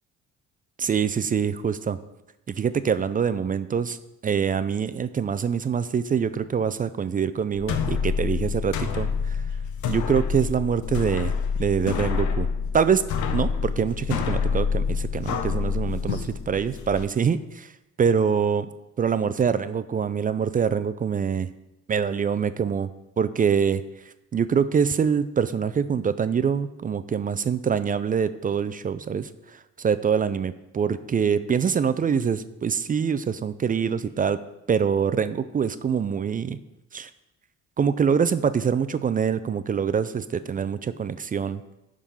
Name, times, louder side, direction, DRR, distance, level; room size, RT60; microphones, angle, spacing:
voice 1, 0.8-2.0 2.5-4.0 4.2-9.4 9.9-11.3 11.6-12.5 12.7-13.0 13.3-17.7 18.0-18.7 19.0-21.5 21.9-22.9 23.2-23.8 24.3-29.3 29.8-34.4 34.7-36.6 36.9-37.1 37.8-41.8, right 7 dB, 30° right, 13 dB, 0.3 m, -24 dB
sound 1, 7.5-17.0, left 6 dB, 75° left, 0.8 m, -27 dB
9.9 x 3.7 x 5.5 m, 0.96 s
cardioid pair, 90°, 30 cm